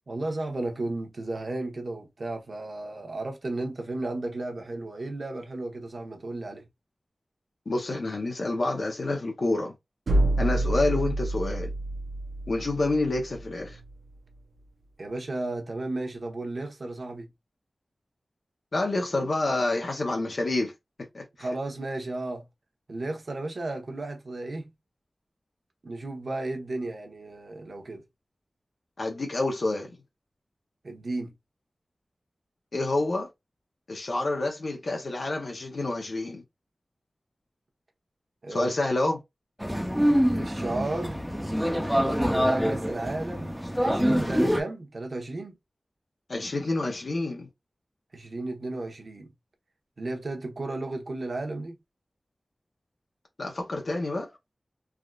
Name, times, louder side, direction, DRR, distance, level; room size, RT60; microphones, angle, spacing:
voice 1, 0.1-6.6 15.0-17.3 21.4-22.4 22.9-24.7 25.8-28.0 30.8-31.3 38.4-38.7 40.3-41.2 42.3-45.6 48.1-49.3 50.0-51.8, right 2 dB, 65° right, 0.9 m, -34 dB
voice 2, 7.7-9.8 10.4-11.7 12.5-13.8 18.7-21.5 29.0-30.0 32.7-33.3 33.9-36.4 38.5-39.2 46.3-47.5 53.4-54.3, left 2 dB, 70° left, 0.7 m, -28 dB
sound 1, 10.1-13.9, right 1 dB, 90° right, 0.5 m, -28 dB
sound 2, 39.6-44.6, equal, ahead, 0.6 m, -25 dB
3.5 x 2.4 x 2.3 m
wide cardioid pair, 60°, 0 cm